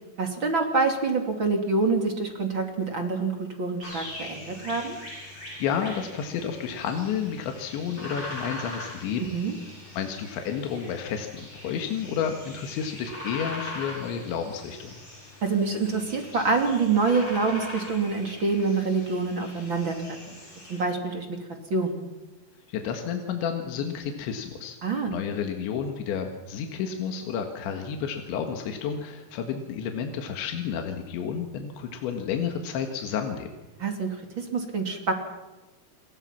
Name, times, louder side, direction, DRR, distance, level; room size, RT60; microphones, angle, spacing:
voice 1, 0.2-5.0 9.2-9.6 15.4-20.0 20.3-20.4 20.7-21.3 21.7-22.0 24.8-25.2 33.8-35.1, right 4 dB, 35° right, 4 dB, 2.5 m, -26 dB
sound 1, 3.8-20.8, left 1 dB, 25° left, 8.7 m, -41 dB
voice 2, 5.6-9.3 10.0-15.0 22.7-24.8 25.1-33.5, left 7 dB, 80° left, 4 dB, 4.1 m, -31 dB
29.5 x 23.0 x 5.9 m, 1.1 s
omnidirectional pair, 5.2 m